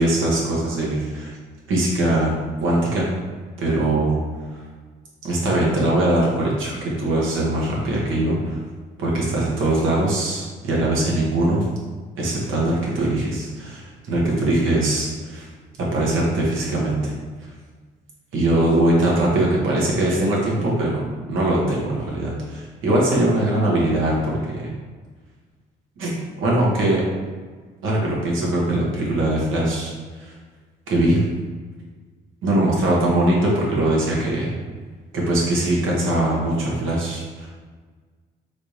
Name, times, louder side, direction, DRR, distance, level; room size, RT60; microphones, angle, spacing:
voice 1, 0.0-1.3 1.7-2.3 2.6-3.1 3.6-4.2 5.2-8.6 9.0-11.7 12.2-15.5 15.8-17.1 18.3-24.7 26.0-26.1 26.4-27.0 27.8-29.9 30.2-30.3 30.9-31.2 32.4-34.6 35.1-37.5, right 1 dB, 85° right, -4 dB, 1.1 m, -21 dB
3.3 x 3.3 x 2.7 m, 1.5 s
cardioid pair, 90°, 20 cm